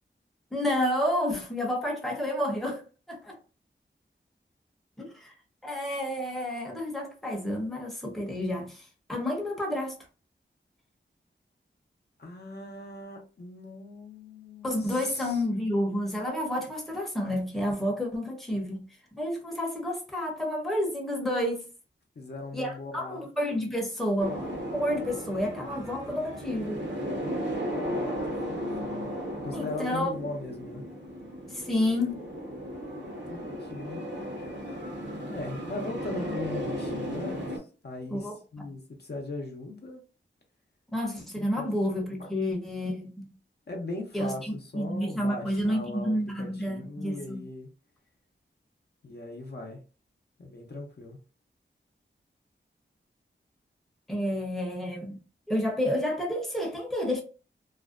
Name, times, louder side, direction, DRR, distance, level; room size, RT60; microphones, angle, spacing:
voice 1, 0.5-2.8 3.1-3.4 5.0-5.3 5.6-10.0 14.6-18.8 19.1-21.6 22.5-24.5 24.7-26.8 29.5-30.1 31.5-32.2 38.1-38.7 40.9-43.3 44.1-47.4 54.1-55.2 55.5-57.2, left 1 dB, ahead, 0.7 m, -30 dB
voice 2, 12.2-15.4 22.2-23.3 27.8-29.1 29.4-30.8 33.3-34.0 34.7-34.8 35.3-40.0 41.3-41.7 42.2-42.3 43.7-47.7 49.0-49.8 50.4-51.2, left 2 dB, 55° left, 0.6 m, -39 dB
sound 1, 24.2-37.6, equal, 65° right, 0.8 m, -35 dB
2.4 x 2.1 x 2.4 m
wide cardioid pair, 75°, 20 cm